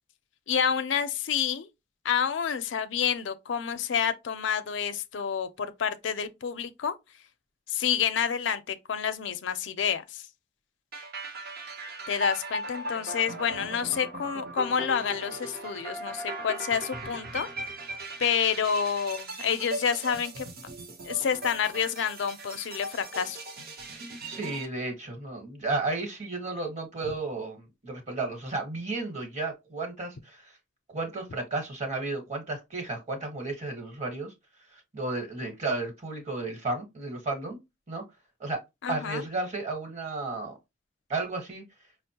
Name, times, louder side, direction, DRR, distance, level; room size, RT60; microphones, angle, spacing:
voice 1, 0.5-1.7 2.0-6.9 7.7-10.2 12.1-17.5 18.2-20.5 21.0-23.4 38.8-39.2, left 7 dB, 85° left, 0.5 m, -29 dB
sound 1, 10.9-24.7, right 1 dB, 55° right, 0.7 m, -38 dB
voice 2, 24.2-30.5 30.9-34.3 34.7-37.6 37.9-38.0 38.4-38.6 38.9-40.5 41.1-41.6, right 3 dB, 40° right, 1.1 m, -33 dB
5.2 x 2.0 x 2.8 m
head